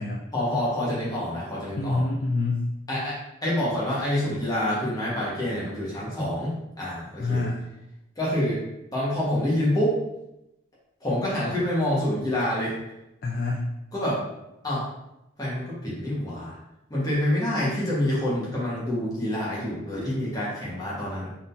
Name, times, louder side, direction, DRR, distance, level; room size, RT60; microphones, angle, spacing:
voice 1, 0.3-2.0 2.9-6.5 6.8-7.4 8.2-8.6 8.9-10.0 11.0-12.8 13.9-14.2 14.6-14.9 15.4-16.6 16.9-21.3, left 1 dB, 20° left, -7 dB, 1.3 m, -27 dB
voice 2, 1.8-2.7 7.2-7.7 13.2-13.7, left 2 dB, 45° left, -2 dB, 0.4 m, -26 dB
3.8 x 3.8 x 2.6 m, 0.88 s
head